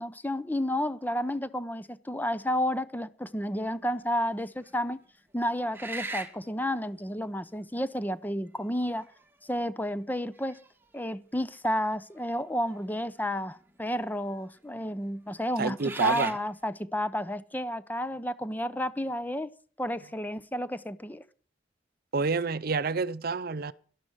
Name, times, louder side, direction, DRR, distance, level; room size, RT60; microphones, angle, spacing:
voice 1, 0.0-5.0 5.3-9.1 9.4-10.6 10.9-19.5 19.8-21.2, equal, 10° left, 0.7 m, -31 dB
sound 1, 3.6-4.0 4.6-4.7 5.7-6.5 7.7-7.8 8.8-9.2 9.7-9.8 10.3-11.0 12.7-12.8 13.1-13.7 14.3-14.5 15.4-16.4, right 2 dB, 10° right, 1.7 m, -39 dB
voice 2, 15.6-16.3 22.1-23.7, right 4 dB, 55° right, 0.7 m, -28 dB
12.0 x 12.0 x 6.3 m
head